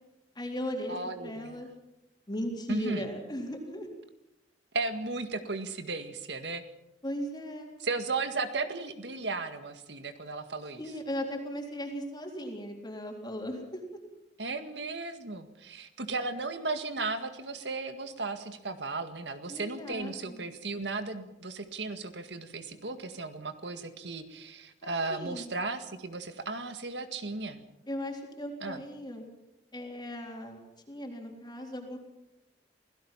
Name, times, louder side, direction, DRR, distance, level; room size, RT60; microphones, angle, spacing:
voice 1, 0.4-1.7 2.3-3.9 7.0-7.7 10.8-13.8 19.5-20.4 24.8-25.5 27.9-29.2 29.7-30.6 30.9-32.0, equal, 25° left, 1 dB, 3.7 m, -37 dB
voice 2, 0.9-1.6 2.7-3.1 4.7-6.6 7.8-10.8 14.4-27.6 28.6-28.8, right 3 dB, 70° right, 8 dB, 1.9 m, -35 dB
28.0 x 17.0 x 5.9 m, 0.92 s
head